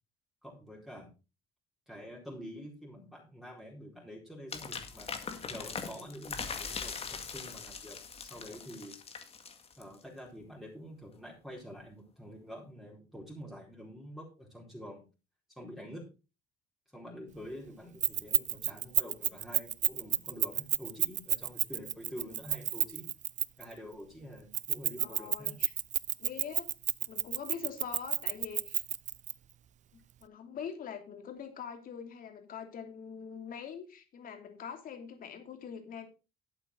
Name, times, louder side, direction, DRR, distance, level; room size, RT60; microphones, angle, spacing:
voice 1, 0.4-1.1 1.9-5.1 5.5-9.0 9.8-15.0 15.6-16.1 16.9-23.1 23.6-25.5, equal, ahead, -3 dB, 4.2 m, -47 dB
sound 1, 4.5-10.0, left 5 dB, 35° left, 2.0 m, -41 dB
voice 2, 5.1-5.4 22.1-22.5 25.0-25.7 26.2-26.7 27.1-28.8 29.9-36.1, left 7 dB, 55° left, 5 dB, 2.9 m, -44 dB
Keys jangling, 18.0-23.7 24.5-29.3, right 11 dB, 45° right, 0.5 m, -30 dB
12.0 x 8.3 x 3.9 m, 0.30 s
cardioid pair, 110°, 17 cm